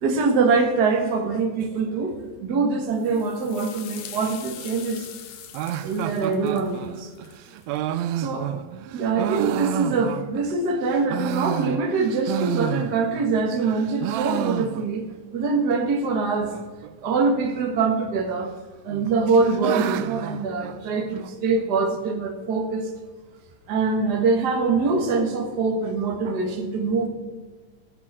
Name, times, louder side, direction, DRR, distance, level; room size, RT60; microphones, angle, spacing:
voice 1, 0.0-2.1 2.4-5.1 5.8-7.1 8.2-8.5 8.9-15.0 15.3-16.5 17.0-18.5 18.8-22.9 23.7-27.1, right 4 dB, 40° right, 3 dB, 1.5 m, -24 dB
sound 1, 2.9-7.8, left 9 dB, 70° left, 2.0 m, -43 dB
sound 2, 5.5-10.5 10.9-13.3 13.6-15.2 15.4-15.5 15.7-15.8 16.5-16.9 17.9-18.5 18.9-21.3, right 12 dB, 85° right, 1.5 m, -30 dB
18.0 x 7.4 x 4.9 m, 1.4 s
omnidirectional pair, 3.7 m